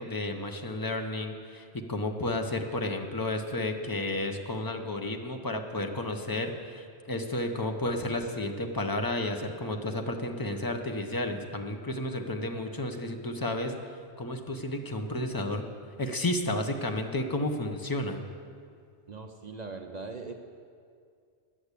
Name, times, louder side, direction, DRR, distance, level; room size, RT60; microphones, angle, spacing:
voice 1, 0.0-13.7 14.2-15.6 16.0-18.2, left 1 dB, 20° left, 4 dB, 0.8 m, -32 dB
voice 2, 19.1-20.3, right 4 dB, 45° right, 4 dB, 0.7 m, -40 dB
11.0 x 8.5 x 8.2 m, 2.2 s
omnidirectional pair, 1.2 m